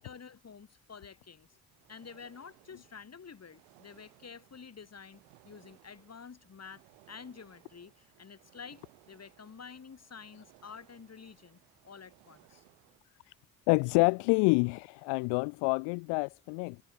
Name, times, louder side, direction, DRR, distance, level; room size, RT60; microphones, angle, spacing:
voice 1, 0.0-1.5 1.9-6.8 7.1-12.6, left 6 dB, 35° left, 3.1 m, -50 dB
sound 1, 1.7-13.0, right 39 dB, 80° right, 7.3 m, -63 dB
voice 2, 13.7-16.8, left 34 dB, 75° left, 0.6 m, -27 dB
hypercardioid pair, 50°, 43 cm